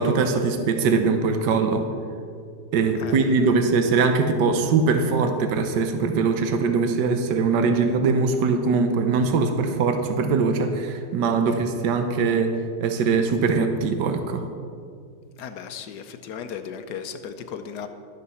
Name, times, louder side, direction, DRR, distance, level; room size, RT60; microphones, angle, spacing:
voice 1, 0.0-1.8 2.7-12.5 12.8-14.4, right 4 dB, 75° right, 6 dB, 1.5 m, -22 dB
voice 2, 3.0-3.3 15.4-17.9, left 7 dB, 70° left, 8 dB, 1.3 m, -36 dB
12.5 x 12.0 x 4.2 m, 2.3 s
omnidirectional pair, 1.9 m